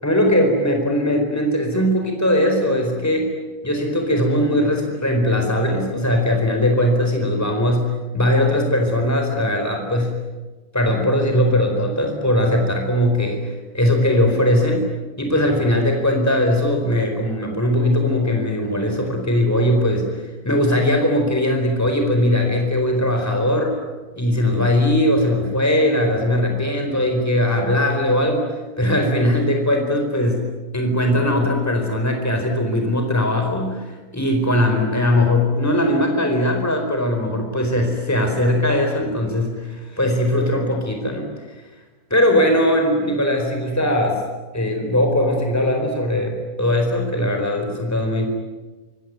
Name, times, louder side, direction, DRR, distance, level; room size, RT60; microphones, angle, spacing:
voice 1, 0.0-3.3 3.6-7.9 8.1-10.1 10.7-14.8 15.2-23.7 24.2-28.5 28.8-30.4 30.7-41.3 42.1-44.2 44.5-48.3, left 1 dB, 10° left, 3 dB, 4.4 m, -20 dB
26.5 x 23.0 x 9.5 m, 1.3 s
omnidirectional pair, 1.6 m